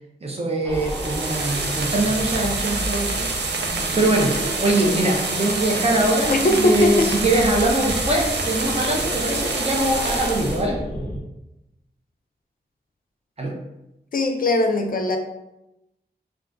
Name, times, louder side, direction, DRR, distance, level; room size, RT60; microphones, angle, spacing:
voice 1, 0.2-3.3 4.0-10.8 13.4-13.5, right 1 dB, 35° right, -1 dB, 0.6 m, -22 dB
sound 1, 0.6-11.2, equal, 5° left, 0.7 m, -32 dB
sound 2, 0.7-10.6, right 3 dB, 85° right, 0.5 m, -27 dB
voice 2, 6.3-7.1 14.1-15.2, left 2 dB, 55° left, 4 dB, 0.4 m, -20 dB
3.4 x 2.4 x 2.5 m, 0.90 s
wide cardioid pair, 100°, 17 cm